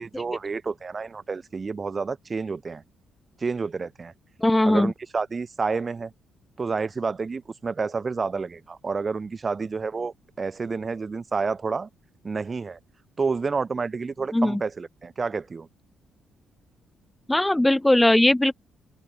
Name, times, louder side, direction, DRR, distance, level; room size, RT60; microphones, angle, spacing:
voice 1, 0.0-2.8 3.4-4.1 4.6-6.1 6.6-11.9 12.2-12.8 13.2-15.7, right 4 dB, 35° right, 3.4 m, -29 dB
voice 2, 4.4-4.9 14.3-14.6 17.3-18.5, left 1 dB, 10° left, 1.2 m, -19 dB
cardioid pair, 90°, 0 cm